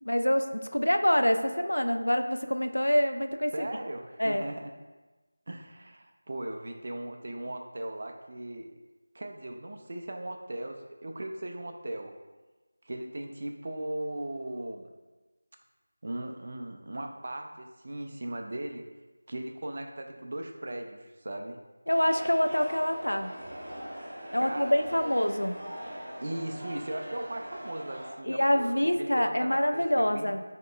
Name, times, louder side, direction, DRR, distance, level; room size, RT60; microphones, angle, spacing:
voice 1, 0.0-3.7 4.2-4.4 21.9-23.3 24.3-25.6 28.3-30.4, equal, 85° left, 7 dB, 0.3 m, -26 dB
voice 2, 3.5-4.7 5.5-8.7 9.1-12.1 12.8-14.9 16.0-18.8 19.3-21.6 24.4-25.2 26.2-30.3, right 1 dB, 45° right, 4 dB, 0.4 m, -38 dB
sound 1, 21.9-28.1, equal, 20° right, 0.9 m, -41 dB
5.9 x 2.8 x 2.3 m, 1.2 s
figure-of-eight pair, 170°, 0 cm